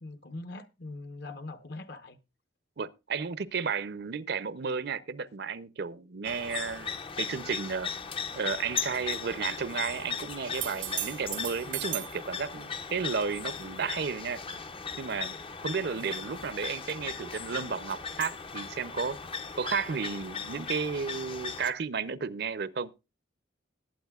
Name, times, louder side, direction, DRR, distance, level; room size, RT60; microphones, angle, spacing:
voice 1, 0.0-2.2, left 2 dB, 55° left, 1.0 m, -42 dB
voice 2, 2.8-6.9 7.2-7.9 8.3-14.4 15.0-15.3 15.6-19.2 19.6-22.9, right 5 dB, 55° right, 0.6 m, -33 dB
sound 1, 6.2-21.7, left 6 dB, 30° left, 0.5 m, -38 dB
sound 2, 10.5-12.2 15.9-16.0, right 16 dB, 90° right, 0.8 m, -36 dB
20.0 x 8.8 x 2.4 m
head